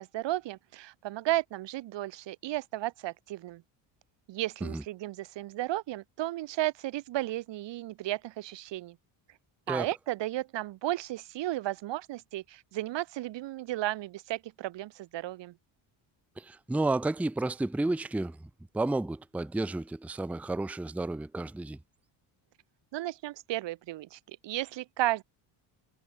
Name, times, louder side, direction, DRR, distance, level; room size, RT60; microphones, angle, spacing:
voice 1, 0.0-3.6 4.3-9.0 9.7-15.5 22.9-25.2, right 15 dB, 60° right, 1.0 m, -34 dB
voice 2, 16.4-21.8, right 2 dB, 5° right, 0.6 m, -32 dB
cardioid pair, 145°, 49 cm